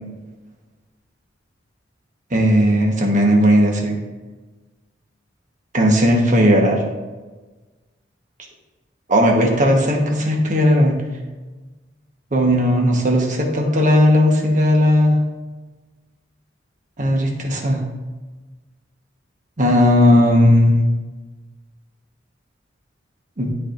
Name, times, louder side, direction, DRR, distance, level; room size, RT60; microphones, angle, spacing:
voice 1, 2.3-4.0 5.7-6.8 9.1-11.0 12.3-15.2 17.0-17.8 19.6-20.8 23.4-23.5, equal, 40° right, 0 dB, 1.2 m, -16 dB
12.5 x 4.4 x 2.6 m, 1.2 s
head